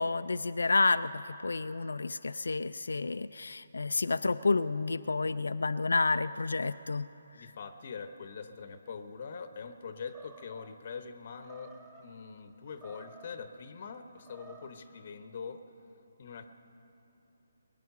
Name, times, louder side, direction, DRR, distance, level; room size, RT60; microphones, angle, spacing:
voice 1, 0.0-7.1, left 3 dB, 70° left, 12 dB, 0.3 m, -30 dB
voice 2, 7.3-11.7 12.0-15.6 16.2-16.5, left 5 dB, 45° left, 9 dB, 0.8 m, -43 dB
Animal, 10.0-10.7 11.4-12.1 12.7-13.4 14.1-14.8, right 3 dB, 20° right, 2.2 m, -54 dB
22.0 x 9.2 x 6.7 m, 3.0 s
figure-of-eight pair, 145°, 0 cm